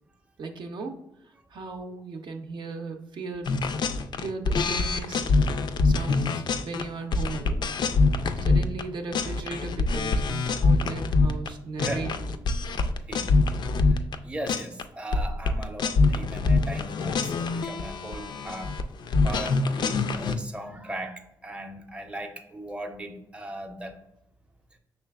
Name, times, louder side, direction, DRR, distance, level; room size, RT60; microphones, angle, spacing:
voice 1, 0.4-1.0 1.2-3.5 4.2-5.2 5.8-7.7 8.4-12.3, right 4 dB, 60° right, 0.6 m, -37 dB
sound 1, 3.5-8.8 9.1-11.5 11.8-14.2 14.5-14.8 15.1-20.4, left 3 dB, 55° left, 0.3 m, -25 dB
voice 2, 11.8-12.1 13.1-13.4 13.9-18.8 19.2-23.9, right 1 dB, 15° right, 0.6 m, -38 dB
5.5 x 3.3 x 2.3 m
supercardioid pair, 65°, 9 cm